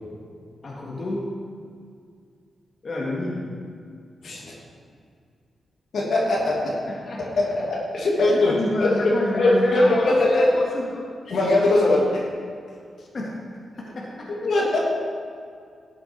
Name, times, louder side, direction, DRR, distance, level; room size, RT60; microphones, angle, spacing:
voice 1, 0.6-1.3 2.8-3.5 6.8-7.4 8.2-11.1 11.7-11.8 13.1-13.4 13.8-14.5, left 1 dB, 55° left, -4 dB, 1.9 m, -29 dB
voice 2, 4.2-4.5 5.9-6.7 7.4-8.9 9.3-10.5 11.3-12.2 14.4-14.8, left 2 dB, 75° left, -3 dB, 2.3 m, -20 dB
13.0 x 7.8 x 4.5 m, 2.2 s
cardioid pair, 55°, 0 cm